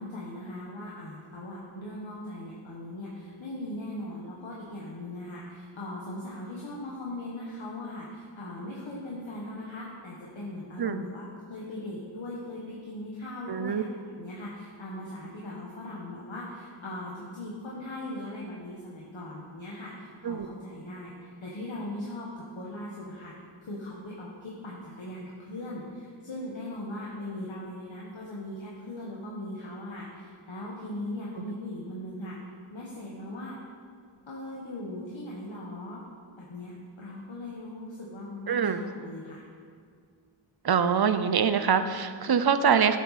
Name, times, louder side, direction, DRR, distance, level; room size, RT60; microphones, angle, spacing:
voice 1, 0.0-13.9 14.2-23.3 23.6-32.4 32.7-33.6 34.3-36.0 36.4-39.4, left 1 dB, 70° left, -5 dB, 1.4 m, -39 dB
voice 2, 13.5-13.8 20.2-20.5 31.4-31.5 38.5-38.8 40.6-43.0, right 7 dB, 50° right, 10 dB, 0.6 m, -24 dB
11.0 x 7.6 x 4.1 m, 2.1 s
wide cardioid pair, 50°, 48 cm